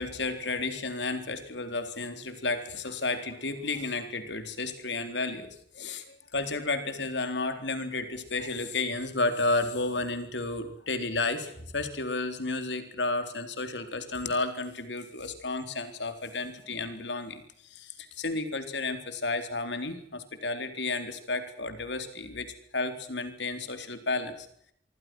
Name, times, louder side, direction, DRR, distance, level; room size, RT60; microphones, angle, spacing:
voice 1, 0.0-22.5 22.7-24.5, left 3 dB, 70° left, 9 dB, 3.9 m, -32 dB
26.5 x 23.0 x 6.3 m, 0.68 s
head